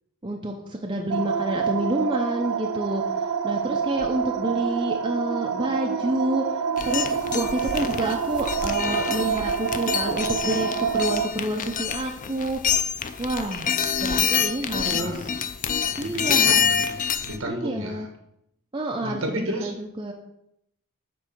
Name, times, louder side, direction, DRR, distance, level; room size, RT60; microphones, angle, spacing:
voice 1, 0.2-3.0 3.4-6.4 6.8-12.6 13.2-13.7 14.0-15.2 16.0-16.6 17.5-18.1 18.7-20.1, right 1 dB, 20° right, 1 dB, 0.6 m, -28 dB
sound 1, 1.1-11.3, right 6 dB, 85° right, 0.5 m, -27 dB
sound 2, 6.8-17.4, left 8 dB, 35° left, 0.4 m, -26 dB
voice 2, 14.7-15.2 16.0-18.1 19.0-19.7, right 1 dB, 65° right, 3 dB, 1.4 m, -32 dB
8.4 x 3.3 x 6.1 m, 0.79 s
head